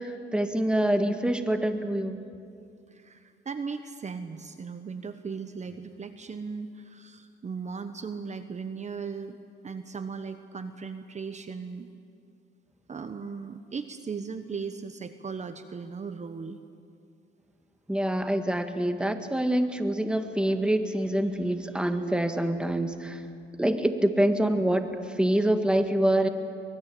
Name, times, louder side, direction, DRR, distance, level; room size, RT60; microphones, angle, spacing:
voice 1, 0.0-2.2 17.9-23.2 23.6-24.9 25.2-26.3, right 1 dB, 5° right, 7 dB, 1.8 m, -26 dB
voice 2, 2.9-9.4 9.6-11.9 12.9-16.6, right 5 dB, 35° right, 9 dB, 1.1 m, -37 dB
24.5 x 20.5 x 8.6 m, 2.4 s
cardioid pair, 90°, 20 cm